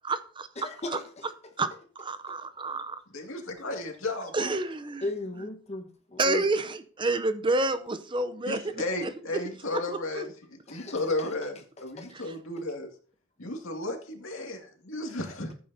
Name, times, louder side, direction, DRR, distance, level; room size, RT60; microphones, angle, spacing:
voice 1, 0.0-1.0 1.6-1.7 2.0-3.0 4.3-5.1 6.2-8.6 9.0-9.1 9.7-10.2 12.1-12.2, right 2 dB, 25° right, 12 dB, 0.6 m, -29 dB
voice 2, 0.6-1.0 5.0-6.4 10.7-11.0 12.0-12.1, left 2 dB, 35° left, 2 dB, 1.3 m, -35 dB
voice 3, 3.1-4.6 8.5-12.9 13.4-15.5, left 2 dB, 90° left, 2 dB, 2.2 m, -34 dB
14.5 x 8.6 x 2.8 m, 0.42 s
head